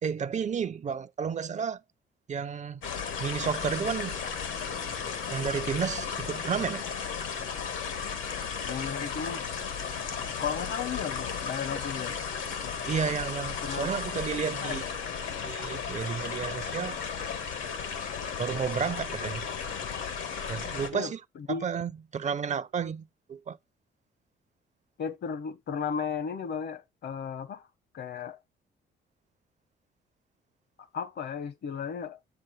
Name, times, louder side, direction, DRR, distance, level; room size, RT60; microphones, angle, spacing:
voice 1, 0.0-1.8 2.3-2.8 3.2-4.2 5.3-6.8 12.9-14.8 15.4-17.0 18.4-19.4 20.5-21.2 21.5-23.6, right 6 dB, 35° right, 0.5 m, -32 dB
sound 1, 2.8-20.9, left 6 dB, 80° left, 1.5 m, -34 dB
voice 2, 8.6-9.4 10.4-12.2 13.6-13.9 14.6-14.8 20.9-21.7 25.0-27.6 27.9-28.4 30.8-32.2, left 7 dB, 60° left, 1.0 m, -35 dB
7.4 x 6.9 x 3.2 m
cardioid pair, 90°, 20 cm